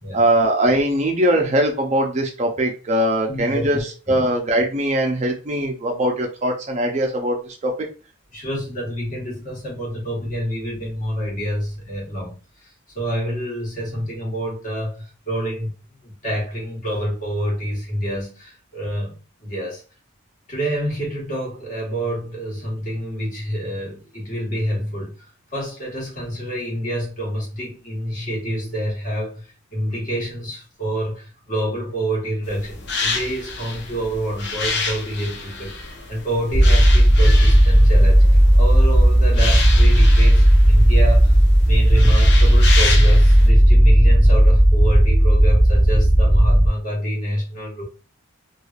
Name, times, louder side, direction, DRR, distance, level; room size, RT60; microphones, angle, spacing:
voice 1, 0.1-7.4 7.6-7.7, right 1 dB, 35° right, 0.5 m, -21 dB
voice 2, 3.3-3.8 4.1-4.3 8.3-12.3 12.9-15.7 16.0-19.8 20.5-25.1 25.5-29.4 29.7-35.8 36.1-41.3 41.7-47.8, equal, 40° left, 1.3 m, -27 dB
sound 1, 32.4-43.5, left 4 dB, 55° left, 0.5 m, -29 dB
sound 2, 36.5-46.7, equal, 10° left, 0.7 m, -13 dB
3.2 x 2.3 x 2.3 m
head